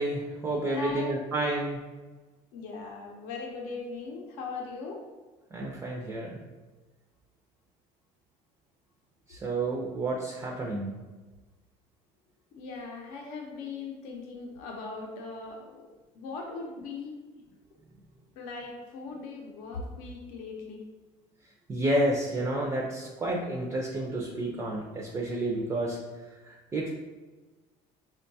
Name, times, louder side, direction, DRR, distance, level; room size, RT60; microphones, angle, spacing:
voice 1, 0.0-1.8 5.5-6.4 9.3-10.9 21.7-26.0 26.4-26.9, right 1 dB, 20° right, -1 dB, 0.4 m, -30 dB
voice 2, 0.7-1.5 2.5-5.0 12.5-15.9 16.1-17.2 18.3-20.8, left 4 dB, 75° left, 1 dB, 0.6 m, -39 dB
4.5 x 2.2 x 2.6 m, 1.3 s
cardioid pair, 130°, 14 cm